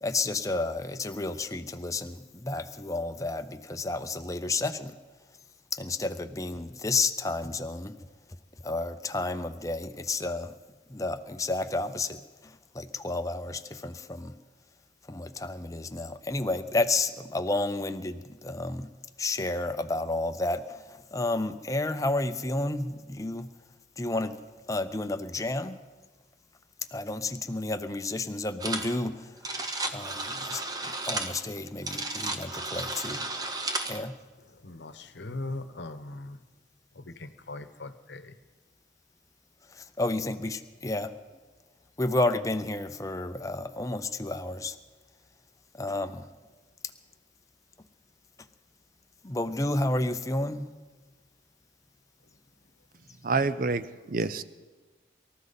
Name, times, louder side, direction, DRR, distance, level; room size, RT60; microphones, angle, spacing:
voice 1, 0.0-2.1 2.4-4.9 5.8-7.9 8.6-10.5 10.9-12.1 12.8-14.3 15.1-18.2 18.4-18.9 19.2-20.6 21.1-23.5 24.0-24.3 24.7-25.8 26.9-29.1 29.9-30.3 30.5-30.6 31.1-33.2 33.9-34.1 40.0-41.1 42.0-44.7 45.8-46.2 49.2-50.7, left 2 dB, 20° left, 0.6 m, -30 dB
sound 1, 28.6-29.0 29.2-34.0, right 2 dB, 20° right, 1.0 m, -33 dB
voice 2, 34.6-36.4 37.0-38.3, left 2 dB, 70° left, 1.0 m, -40 dB
voice 3, 53.2-54.4, right 4 dB, 50° right, 0.6 m, -28 dB
24.0 x 13.5 x 4.1 m
head